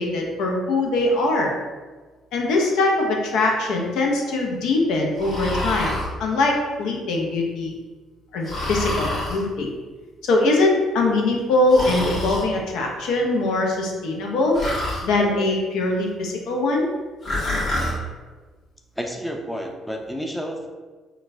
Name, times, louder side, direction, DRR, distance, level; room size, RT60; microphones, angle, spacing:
voice 1, 0.0-1.5 2.3-5.9 6.2-7.8 8.3-9.7 10.2-14.6 15.0-16.9, left 2 dB, 70° left, 0 dB, 0.5 m, -22 dB
Breathing, 5.2-6.1 8.4-9.4 11.7-12.4 14.5-15.1 17.2-18.0, left 1 dB, 55° left, 1.4 m, -26 dB
voice 2, 19.0-20.7, equal, 5° left, 2 dB, 0.5 m, -30 dB
3.8 x 2.2 x 2.5 m, 1.3 s
hypercardioid pair, 55°, 0 cm